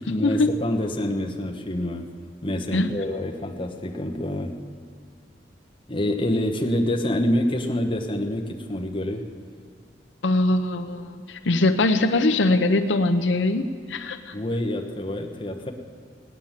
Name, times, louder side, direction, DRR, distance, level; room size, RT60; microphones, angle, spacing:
voice 1, 0.0-2.1 2.4-4.6 5.9-9.3 14.3-15.7, left 1 dB, 30° left, 1 dB, 1.1 m, -27 dB
voice 2, 10.2-14.3, left 2 dB, 90° left, 6 dB, 0.7 m, -22 dB
18.0 x 9.9 x 7.4 m, 2.2 s
head